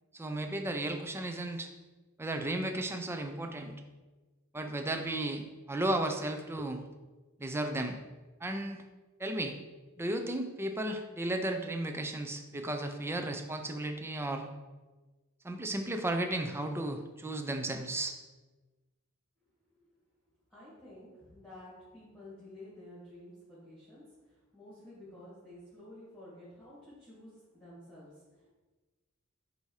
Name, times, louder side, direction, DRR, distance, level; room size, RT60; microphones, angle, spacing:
voice 1, 0.1-1.7 2.2-3.7 4.5-6.8 7.4-8.0 8.4-8.8 9.2-9.5 10.0-14.5 15.4-18.2, right 1 dB, 10° right, 5 dB, 0.5 m, -34 dB
voice 2, 20.5-24.0 24.5-28.1 28.4-28.5, left 1 dB, 5° left, -11 dB, 2.1 m, -51 dB
8.1 x 2.7 x 4.8 m, 1.2 s
head